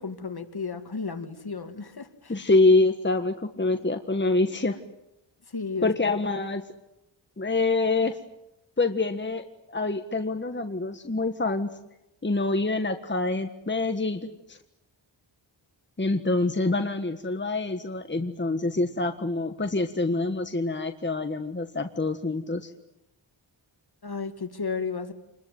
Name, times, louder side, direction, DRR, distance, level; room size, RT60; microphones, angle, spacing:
voice 1, 0.0-2.4 5.5-6.0 24.0-25.1, left 4 dB, 50° left, 7 dB, 2.6 m, -33 dB
voice 2, 2.3-4.8 5.8-6.6 7.4-8.2 8.8-11.7 12.2-14.6 16.0-22.7, left 2 dB, 25° left, 7 dB, 1.5 m, -26 dB
28.0 x 21.5 x 9.4 m, 0.89 s
wide cardioid pair, 85°, 47 cm